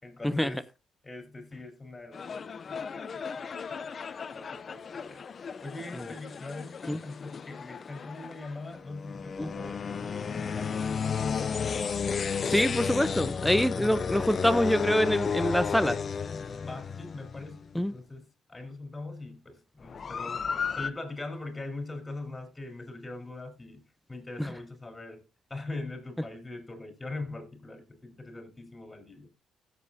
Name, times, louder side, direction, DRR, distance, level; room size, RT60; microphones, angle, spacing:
voice 1, 0.0-0.7 1.0-3.9 4.3-5.3 5.6-11.1 13.9-14.1 16.6-20.4 20.7-23.8 24.1-25.2 25.5-29.3, left 2 dB, 20° left, 4.3 m, -42 dB
sound 1, 2.1-17.7 19.8-20.9, left 6 dB, 45° left, 0.7 m, -33 dB
voice 2, 12.5-16.0 17.8-17.9 24.4-24.5, equal, 5° left, 0.6 m, -25 dB
16.5 x 7.7 x 2.7 m
cardioid pair, 90°, 0 cm